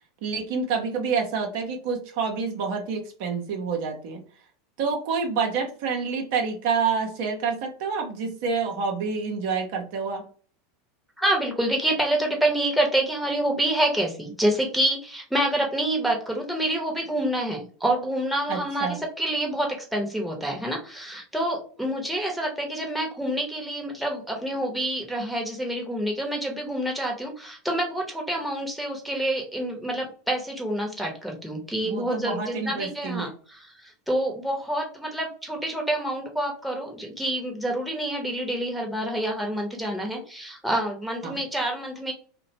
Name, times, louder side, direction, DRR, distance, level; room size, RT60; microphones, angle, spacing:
voice 1, 0.2-4.2 4.8-10.3 18.5-19.0 31.8-33.3 41.2-41.4, right 5 dB, 55° right, 2 dB, 0.6 m, -28 dB
voice 2, 11.2-42.1, right 1 dB, ahead, 0 dB, 0.8 m, -27 dB
2.8 x 2.1 x 2.8 m, 0.42 s
figure-of-eight pair, 80°, 0 cm